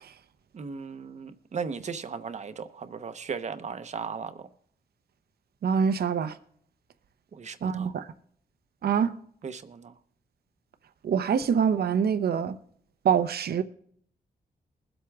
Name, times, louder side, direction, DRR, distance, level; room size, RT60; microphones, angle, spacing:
voice 1, 0.5-4.5 7.3-7.9 9.4-9.9, right 5 dB, 45° right, 0.8 m, -37 dB
voice 2, 5.6-6.4 7.6-8.1 8.8-9.1 11.0-12.6 13.0-13.6, right 7 dB, 80° right, 0.8 m, -25 dB
21.5 x 8.0 x 3.5 m
wide cardioid pair, 150°, 16 cm